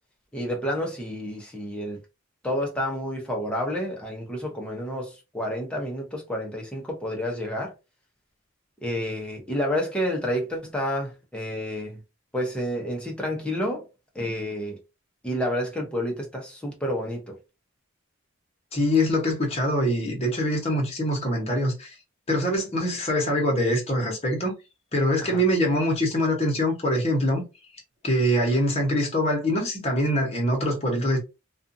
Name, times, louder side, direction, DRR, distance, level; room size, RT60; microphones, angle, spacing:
voice 1, 0.3-2.0 2.4-7.7 8.8-12.0 12.3-13.9 14.1-14.8 15.2-17.4 25.2-25.4, equal, 5° left, 0.7 m, -29 dB
voice 2, 18.7-21.9 22.3-24.5 24.9-27.4 28.0-31.2, equal, 30° left, 1.0 m, -24 dB
2.5 x 2.4 x 2.5 m
head